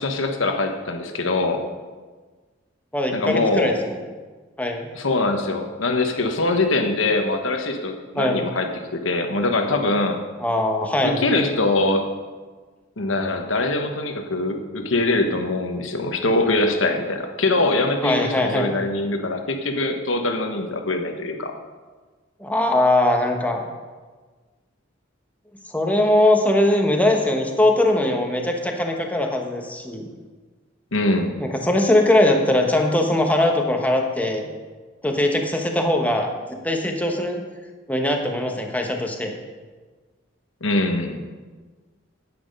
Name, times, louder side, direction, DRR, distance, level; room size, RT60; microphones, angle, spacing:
voice 1, 0.0-1.6 3.1-3.7 4.9-10.2 11.0-12.1 13.0-21.5 30.9-31.3 40.6-41.2, left 2 dB, 85° left, 5 dB, 1.3 m, -23 dB
voice 2, 2.9-3.9 4.6-4.9 8.2-8.4 10.4-11.2 18.0-18.8 22.4-23.6 25.7-30.1 31.4-34.5 35.0-36.3 36.6-37.4 37.9-39.3, left 1 dB, 10° left, 2 dB, 1.2 m, -21 dB
10.5 x 8.7 x 5.4 m, 1.4 s
head